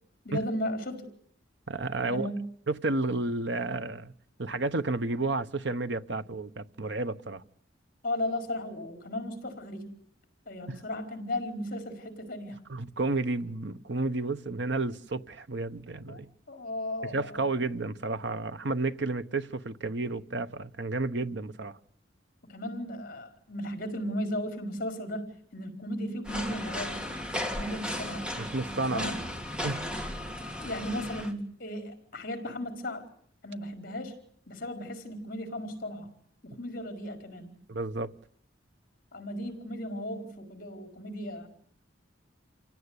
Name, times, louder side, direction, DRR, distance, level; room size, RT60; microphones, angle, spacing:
voice 1, 0.2-1.1 2.0-2.4 8.0-9.9 10.5-12.6 16.1-16.2 16.5-17.5 22.5-27.0 27.3-28.2 28.8-29.2 30.6-33.1 33.4-34.2 34.5-36.1 36.4-37.5 39.1-41.5, left 1 dB, 50° left, 4.8 m, -35 dB
voice 2, 1.7-2.3 2.7-4.1 4.4-7.4 10.7-10.8 12.7-16.3 17.0-21.8 28.4-29.1 29.6-29.8 37.7-38.1, right 3 dB, 65° right, 1.1 m, -31 dB
sound 1, 26.2-31.3, left 1 dB, 5° right, 2.2 m, -35 dB
28.0 x 17.0 x 9.7 m
head